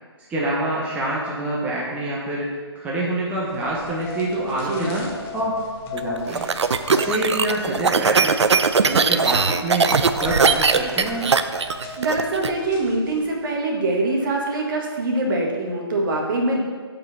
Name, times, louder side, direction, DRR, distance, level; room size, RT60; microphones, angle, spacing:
voice 1, 0.3-5.6 5.9-6.5 6.9-8.4 8.8-9.9 10.2-11.3, right 1 dB, 10° right, -6 dB, 1.0 m, -26 dB
sound 1, 3.5-13.5, left 4 dB, 15° left, 0.9 m, -37 dB
voice 2, 4.6-5.1 7.7-7.9 12.0-16.6, right 2 dB, 50° right, 0 dB, 1.8 m, -24 dB
sound 2, 6.0-12.5, right 5 dB, 85° right, 0.6 m, -19 dB
6.7 x 5.7 x 6.2 m, 1.5 s
hypercardioid pair, 150°, 14 cm